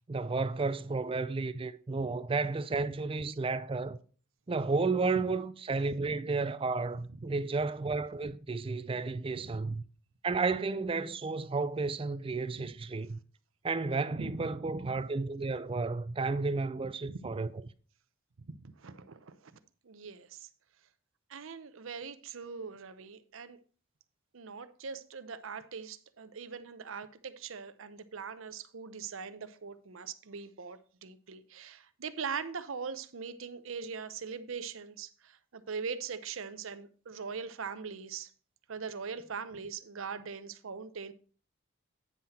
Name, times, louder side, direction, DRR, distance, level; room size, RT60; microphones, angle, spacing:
voice 1, 0.1-4.0 4.5-9.8 10.2-13.2 13.6-17.5, right 3 dB, 25° right, 0.4 m, -32 dB
voice 2, 14.1-14.9 17.1-17.4 18.4-19.5 19.8-20.5 21.3-23.6 24.3-38.3 38.7-41.1, right 5 dB, 75° right, 0.7 m, -41 dB
9.3 x 5.8 x 4.2 m
head